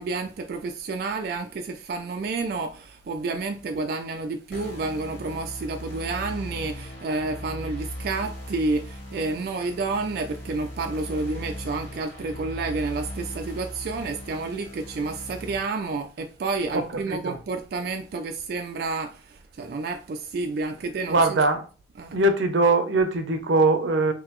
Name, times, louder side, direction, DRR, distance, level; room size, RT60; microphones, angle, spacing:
voice 1, 0.0-21.5 21.9-22.2, right 3 dB, 55° right, 0.3 m, -30 dB
sound 1, 4.5-15.6, equal, 80° left, 1.8 m, -38 dB
voice 2, 16.7-17.4 21.1-21.7 22.1-24.1, right 2 dB, 90° right, 0.7 m, -22 dB
3.8 x 2.7 x 3.0 m
head